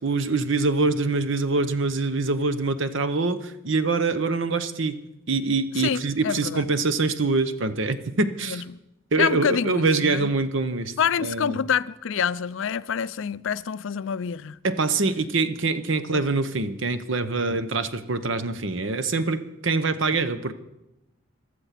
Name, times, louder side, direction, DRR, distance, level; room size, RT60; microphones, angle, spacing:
voice 1, 0.0-5.0 5.3-8.6 9.1-10.9 11.2-11.6 14.6-20.5, right 3 dB, 60° right, 0.9 m, -24 dB
voice 2, 5.8-6.6 8.4-8.8 9.2-10.3 11.0-14.6 16.1-16.3, left 7 dB, 65° left, 0.4 m, -27 dB
15.0 x 12.5 x 5.9 m
head